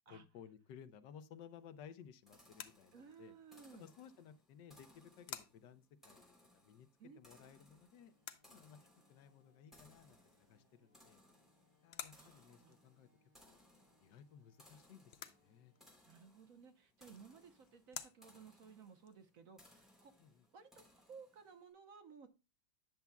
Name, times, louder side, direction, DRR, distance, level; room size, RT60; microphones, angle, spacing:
voice 1, 0.1-3.3 3.7-6.9 7.2-8.1 8.5-8.8 9.1-10.2 10.5-11.2 11.8-13.1 13.5-13.6 14.0-15.7 20.2-20.5, left 8 dB, 85° left, 1.4 m, -58 dB
sound 1, 1.5-19.7, left 8 dB, 60° left, 0.6 m, -57 dB
sound 2, 2.3-21.6, left 1 dB, ahead, 3.2 m, -67 dB
voice 2, 2.9-3.8 7.0-7.2 12.1-12.7 16.1-20.1 20.5-22.3, right 6 dB, 55° right, 1.3 m, -58 dB
sound 3, 7.9-15.9, left 1 dB, 15° right, 1.6 m, -77 dB
10.5 x 7.0 x 2.3 m
omnidirectional pair, 1.9 m